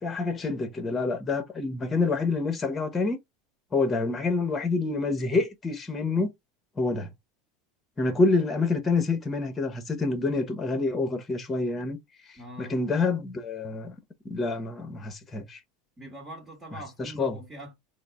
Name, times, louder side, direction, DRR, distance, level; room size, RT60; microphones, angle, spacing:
voice 1, 0.0-3.2 3.7-6.3 6.8-7.1 8.0-12.0 12.6-13.9 14.2-15.6 17.0-17.4, left 3 dB, 25° left, 0.9 m, -27 dB
voice 2, 12.4-12.8 16.0-17.8, equal, 20° right, 1.3 m, -42 dB
3.8 x 2.1 x 3.4 m
hypercardioid pair, 95°, 0 cm